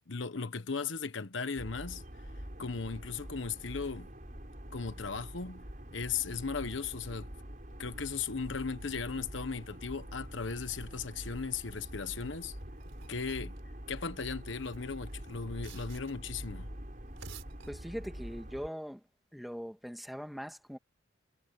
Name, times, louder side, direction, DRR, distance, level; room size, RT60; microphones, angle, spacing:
voice 1, 0.1-2.3 2.6-4.1 4.7-5.6 5.9-7.3 7.8-12.6 13.1-13.5 13.9-16.7, left 5 dB, 75° left, 1.1 m, -37 dB
sound 1, 1.6-18.7, equal, 40° right, 5.4 m, -45 dB
sound 2, 12.6-13.6 14.5-16.3 17.0-18.3, right 4 dB, 80° right, 4.2 m, -53 dB
voice 2, 17.7-19.0 19.3-20.8, equal, ahead, 1.9 m, -41 dB
head